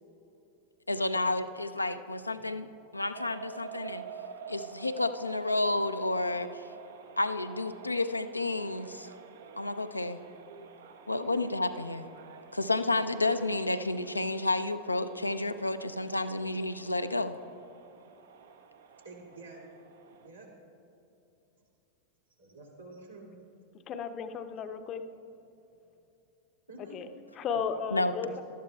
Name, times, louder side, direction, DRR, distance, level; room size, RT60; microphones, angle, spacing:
voice 1, 0.9-2.7 2.9-4.0 4.5-6.6 7.2-9.1 9.6-10.2 11.1-12.1 12.5-17.4 27.9-28.1, left 2 dB, 85° left, 10 dB, 0.5 m, -30 dB
sound 1, 3.1-20.3, right 6 dB, 60° right, 0.6 m, -49 dB
voice 2, 19.0-19.6 19.9-20.5 22.4-23.4 26.7-27.0 28.2-28.3, right 2 dB, 80° right, -4 dB, 2.6 m, -49 dB
voice 3, 23.9-25.0 26.9-27.1 27.4-28.4, left 6 dB, 30° left, 9 dB, 0.6 m, -34 dB
18.5 x 12.5 x 2.3 m, 2.9 s
figure-of-eight pair, 90°, 0 cm